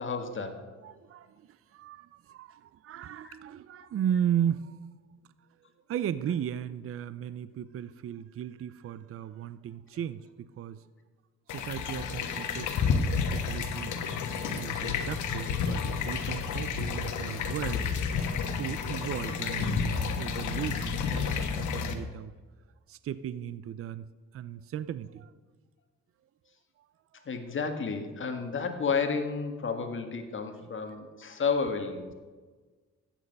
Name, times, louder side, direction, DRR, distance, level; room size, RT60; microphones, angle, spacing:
voice 1, 0.0-0.7 3.2-3.4 27.1-32.1, left 5 dB, 40° left, 6 dB, 1.7 m, -31 dB
voice 2, 0.8-4.8 5.9-10.9 11.5-14.0 14.5-17.9 18.6-22.3 22.9-24.1 24.3-25.3, right 9 dB, 50° right, 15 dB, 0.5 m, -35 dB
sound 1, 11.5-21.9, left 6 dB, 80° left, 1.3 m, -31 dB
13.0 x 9.1 x 5.3 m, 1.4 s
cardioid pair, 90°, 30 cm